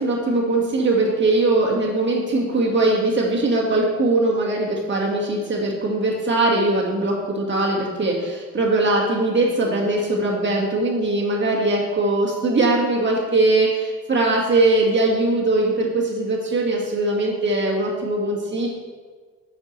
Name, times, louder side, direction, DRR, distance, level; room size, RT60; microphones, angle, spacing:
voice 1, 0.0-18.7, right 2 dB, 40° right, -2 dB, 1.7 m, -21 dB
8.6 x 5.8 x 3.1 m, 1.5 s
cardioid pair, 90°, 30 cm